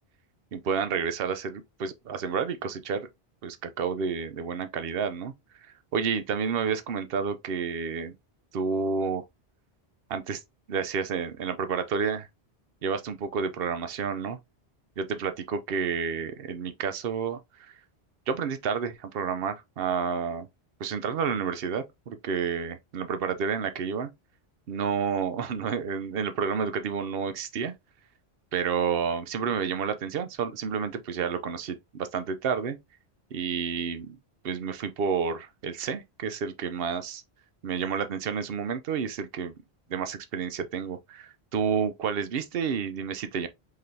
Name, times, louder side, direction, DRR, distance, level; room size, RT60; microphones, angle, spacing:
voice 1, 0.5-3.1 3.4-5.3 5.9-8.1 8.5-9.2 10.1-10.4 10.7-12.3 12.8-14.4 15.0-17.7 18.3-20.5 20.8-24.1 24.7-27.7 28.5-32.8 33.3-34.2 34.4-37.2 37.6-39.5 39.9-43.5, right 6 dB, 65° right, 0.9 m, -30 dB
4.9 x 4.0 x 2.7 m
omnidirectional pair, 1.1 m